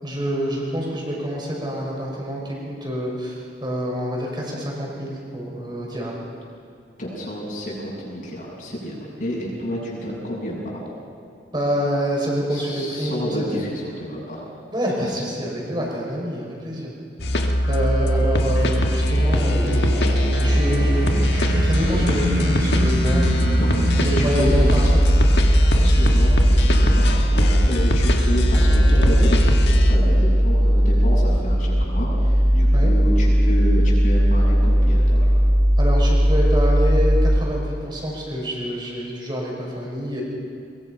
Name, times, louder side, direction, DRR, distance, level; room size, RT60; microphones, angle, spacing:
voice 1, 0.0-6.1 11.5-13.6 14.7-17.0 17.7-19.9 20.4-23.5 24.0-25.0 25.8-25.9 28.6-28.7 32.7-32.9 35.8-40.2, equal, 25° right, -2 dB, 5.9 m, -27 dB
voice 2, 7.0-10.9 12.5-14.4 23.6-23.7 24.1-25.1 25.8-29.4 29.9-35.4, equal, 45° left, -5 dB, 7.4 m, -29 dB
sound 1, 17.2-30.0, equal, 65° left, 1.6 m, -21 dB
sound 2, 19.1-24.9, equal, 55° right, 6.9 m, -25 dB
sound 3, 24.5-37.4, equal, 10° right, 2.5 m, -17 dB
22.5 x 22.5 x 5.7 m, 2.6 s
head